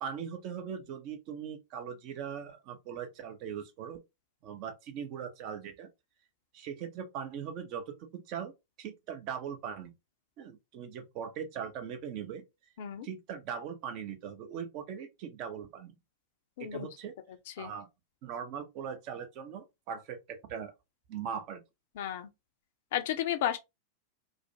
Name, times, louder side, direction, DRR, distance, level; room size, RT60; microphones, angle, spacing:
voice 1, 0.0-4.0 4.4-5.9 6.5-8.5 8.8-9.9 10.4-12.4 13.0-16.0 16.6-17.1 17.6-17.9 18.2-20.7 21.1-21.6, right 7 dB, 45° right, 0.5 m, -40 dB
voice 2, 16.6-16.9 17.6-17.7 22.0-22.3 22.9-23.6, left 11 dB, 55° left, 0.4 m, -32 dB
2.4 x 2.1 x 2.5 m
figure-of-eight pair, 90°, 0 cm